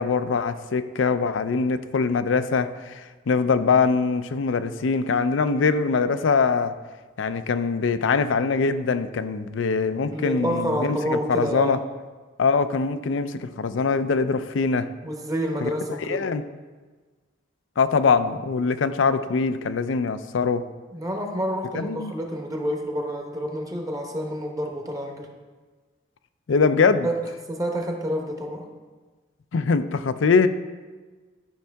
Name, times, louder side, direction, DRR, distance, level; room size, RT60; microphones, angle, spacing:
voice 1, 0.0-6.7 7.2-11.8 12.4-14.9 15.6-15.7 16.1-16.4 17.8-20.6 21.7-22.1 26.5-27.1 29.5-30.5, left 5 dB, 80° left, 11 dB, 0.5 m, -23 dB
voice 2, 10.1-11.8 15.0-16.3 20.9-25.3 27.0-27.2 27.5-28.7, equal, 20° right, 2 dB, 0.9 m, -28 dB
12.0 x 5.5 x 3.4 m, 1.4 s
head